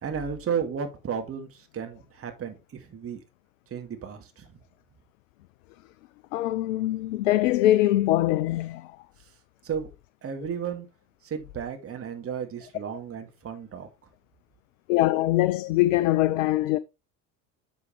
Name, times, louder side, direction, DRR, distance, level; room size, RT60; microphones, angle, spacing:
voice 1, 0.0-3.2 3.7-4.5 9.6-9.9 10.2-10.9 11.2-13.9, right 7 dB, 30° right, 2.3 m, -33 dB
voice 2, 6.3-8.9 14.9-16.8, left 15 dB, 55° left, 0.6 m, -23 dB
10.5 x 6.2 x 3.3 m
figure-of-eight pair, 70°, 47 cm